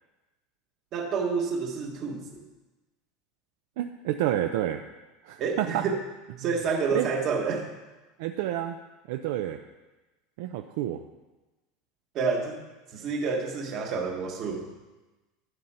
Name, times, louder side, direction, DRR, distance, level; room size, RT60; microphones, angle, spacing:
voice 1, 0.9-2.4 5.4-6.0 6.4-7.7 12.1-12.6 12.9-14.6, right 5 dB, 30° right, 3 dB, 1.3 m, -29 dB
voice 2, 3.8-4.8 5.2-5.8 6.9-7.1 8.2-8.8 9.1-9.6 10.4-11.0, right 12 dB, 55° right, 7 dB, 0.5 m, -29 dB
11.5 x 10.0 x 4.3 m, 1.1 s
supercardioid pair, 180°, 0 cm